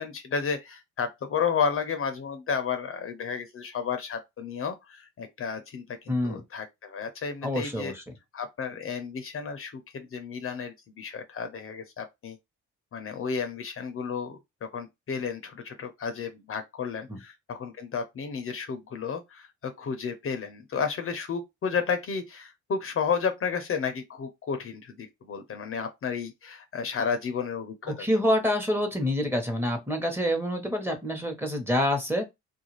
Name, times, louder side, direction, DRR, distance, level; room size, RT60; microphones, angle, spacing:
voice 1, 0.0-7.9 8.3-12.4 12.9-28.0, left 6 dB, 45° left, 0.6 m, -32 dB
voice 2, 6.1-6.4 7.4-8.0 17.1-17.2 27.9-32.3, equal, 5° right, 1.0 m, -27 dB
2.4 x 2.3 x 3.1 m
cardioid pair, 90°, 30 cm